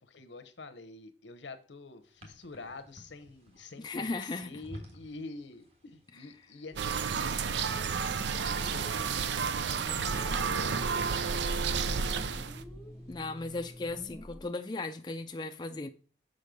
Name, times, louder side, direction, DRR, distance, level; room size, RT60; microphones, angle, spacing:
voice 1, 0.0-11.1, left 3 dB, 85° left, 0.9 m, -48 dB
sound 1, 2.2-5.3 5.5-6.0 6.3-6.4 6.7-7.5 7.8-8.6 10.1-14.1, equal, 35° right, 1.5 m, -48 dB
voice 2, 3.8-4.5 13.1-15.9, left 3 dB, 25° left, 0.4 m, -36 dB
sound 2, 6.7-14.4, equal, ahead, 0.9 m, -50 dB
sound 3, 6.8-12.6, right 5 dB, 80° right, 0.5 m, -31 dB
6.5 x 5.3 x 5.2 m
head